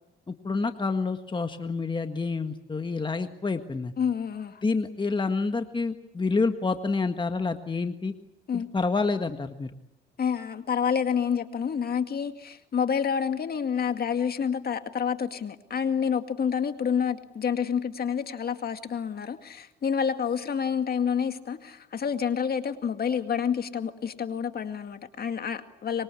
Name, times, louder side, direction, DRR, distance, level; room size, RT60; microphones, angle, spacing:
voice 1, 0.3-4.0 4.6-8.1 8.5-9.7, left 4 dB, 25° left, 7 dB, 1.6 m, -28 dB
voice 2, 4.0-4.6 8.5-8.7 10.2-26.0, left 7 dB, 50° left, 8 dB, 2.2 m, -28 dB
25.0 x 23.0 x 8.6 m, 0.85 s
cardioid pair, 90°, 20 cm